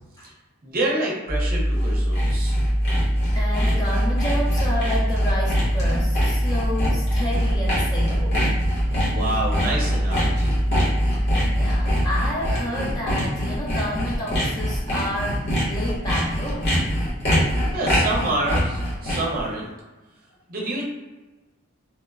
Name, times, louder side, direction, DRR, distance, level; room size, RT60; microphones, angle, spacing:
voice 1, 0.6-2.6 9.1-10.5 17.7-19.7 20.5-20.9, right 1 dB, 45° right, -3 dB, 0.6 m, -27 dB
sound 1, 1.3-12.3, equal, 80° left, 0.8 m, -23 dB
Sawing, 1.6-19.4, equal, 55° left, 1.0 m, -25 dB
voice 2, 3.3-8.4 11.2-16.8, left 1 dB, 20° left, -5 dB, 0.5 m, -30 dB
2.9 x 2.1 x 2.3 m, 1.2 s
head